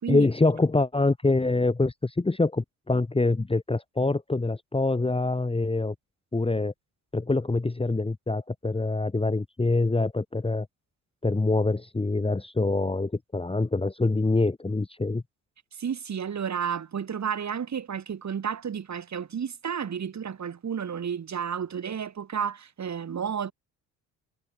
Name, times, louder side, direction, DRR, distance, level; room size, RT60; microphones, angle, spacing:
voice 1, 0.1-5.9 6.3-6.7 7.1-10.7 11.2-15.2, left 2 dB, 15° left, 1.6 m, -25 dB
voice 2, 15.8-23.5, right 7 dB, 40° right, 3.4 m, -31 dB
figure-of-eight pair, 45°, 42 cm